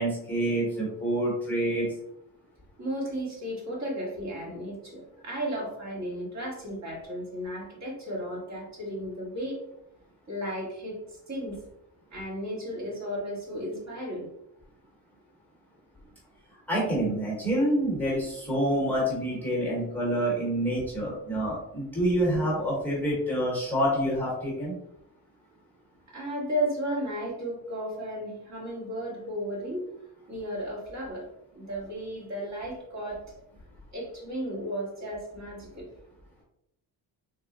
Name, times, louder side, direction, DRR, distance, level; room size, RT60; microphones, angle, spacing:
voice 1, 0.0-1.9 16.7-24.7, right 1 dB, 5° left, -5 dB, 1.0 m, -27 dB
voice 2, 2.8-9.6 10.3-11.6 12.1-14.3 26.1-29.9 30.3-31.3 31.5-33.2 33.9-35.9, equal, 45° right, -4 dB, 1.4 m, -34 dB
3.6 x 2.1 x 3.7 m, 0.82 s
cardioid pair, 160°, 39 cm